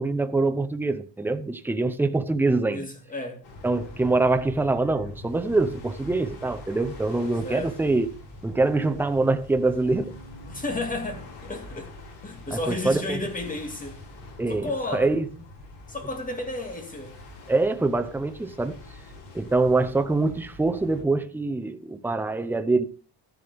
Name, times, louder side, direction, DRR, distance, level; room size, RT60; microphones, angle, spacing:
voice 1, 0.0-2.9 3.6-8.1 8.4-10.2 12.5-13.2 14.4-15.3 17.5-18.8 19.3-22.8, right 3 dB, 5° right, 0.6 m, -24 dB
voice 2, 2.7-3.4 7.4-7.8 10.4-11.9 12.2-14.0 14.5-15.2 15.9-17.2, left 2 dB, 20° left, 2.2 m, -32 dB
sound 1, 3.4-21.0, left 2 dB, 70° left, 7.4 m, -44 dB
12.0 x 10.5 x 3.5 m
cardioid pair, 155°, 43 cm